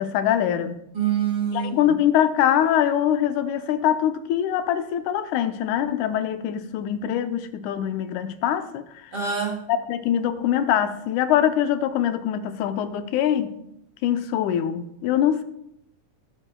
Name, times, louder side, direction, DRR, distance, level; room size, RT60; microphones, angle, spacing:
voice 1, 0.0-0.8 1.5-9.1 9.7-13.6 14.0-15.4, left 10 dB, 85° left, 2.1 m, -23 dB
voice 2, 0.9-1.8 9.1-9.6, right 8 dB, 40° right, 2.3 m, -25 dB
18.5 x 8.8 x 2.2 m
omnidirectional pair, 3.4 m